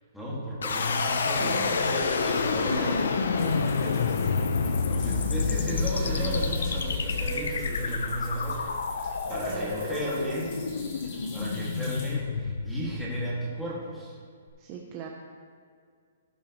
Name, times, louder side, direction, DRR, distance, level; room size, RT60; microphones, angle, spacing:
voice 1, 0.1-10.5 11.1-14.2, right 1 dB, ahead, -7 dB, 1.8 m, -35 dB
sound 1, 0.6-13.6, left 5 dB, 70° left, 0.7 m, -28 dB
voice 2, 1.4-2.1 9.5-9.8 14.6-15.1, right 7 dB, 20° right, 0 dB, 0.7 m, -40 dB
sound 2, 2.3-3.1 5.3-7.9 9.2-10.6, right 4 dB, 50° right, 2.0 m, -39 dB
sound 3, 3.4-12.1, left 3 dB, 25° left, 1.8 m, -47 dB
17.0 x 7.1 x 3.0 m, 2.1 s
hypercardioid pair, 175°, 0 cm